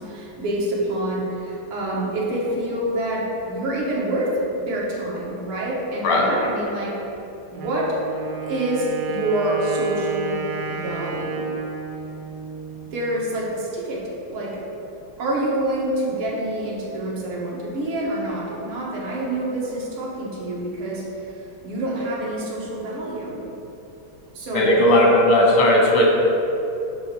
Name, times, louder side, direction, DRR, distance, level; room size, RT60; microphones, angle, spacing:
voice 1, 0.0-6.9 7.5-7.9 8.4-10.4 10.7-11.4 12.9-14.0 14.3-14.6 15.2-23.4 24.3-24.8, right 1 dB, 85° right, -5 dB, 2.4 m, -27 dB
Wind instrument woodwind instrument, 7.5-13.3, right 5 dB, 65° right, 1.1 m, -31 dB
voice 2, 24.5-26.1, left 1 dB, 90° left, -1 dB, 2.2 m, -16 dB
9.6 x 3.4 x 6.0 m, 2.9 s
omnidirectional pair, 2.3 m